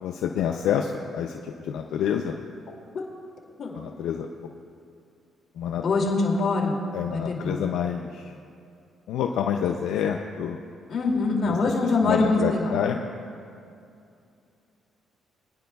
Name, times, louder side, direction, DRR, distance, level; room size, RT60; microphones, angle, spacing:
voice 1, 0.0-2.4 3.7-4.3 5.6-5.8 6.9-8.3 9.1-10.6 11.4-11.6 12.0-13.0, left 8 dB, 85° left, 3 dB, 0.5 m, -27 dB
voice 2, 5.8-6.8 7.1-7.6 10.9-12.7, left 3 dB, 55° left, -1 dB, 2.5 m, -24 dB
23.0 x 10.5 x 2.3 m, 2.5 s
cardioid pair, 90°, 0 cm